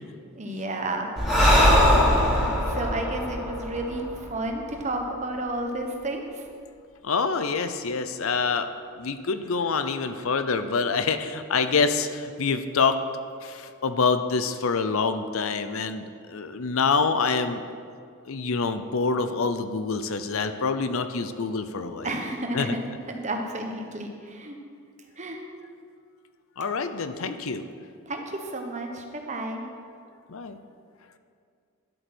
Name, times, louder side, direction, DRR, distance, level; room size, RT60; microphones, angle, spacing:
voice 1, 0.4-1.1 2.6-6.5 22.0-24.6 25.2-25.4 28.1-29.6, right 1 dB, 30° right, 3 dB, 1.1 m, -31 dB
Breathing, 1.2-4.7, equal, ahead, 3.4 m, -21 dB
voice 2, 7.0-13.0 13.4-17.6 18.3-22.1 22.5-22.8 26.6-27.6 30.3-30.6, left 4 dB, 70° left, 10 dB, 0.6 m, -26 dB
11.0 x 7.9 x 6.1 m, 2.2 s
head